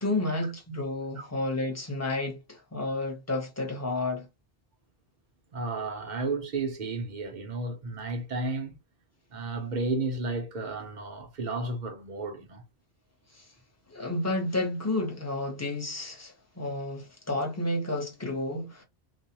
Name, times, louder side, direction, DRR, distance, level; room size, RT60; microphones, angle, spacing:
voice 1, 0.0-4.3 13.3-13.5 13.9-18.8, left 2 dB, 15° left, 0.6 m, -31 dB
voice 2, 5.5-8.8 9.3-12.6, right 3 dB, 50° right, 0.6 m, -33 dB
2.5 x 2.0 x 2.7 m
omnidirectional pair, 1.1 m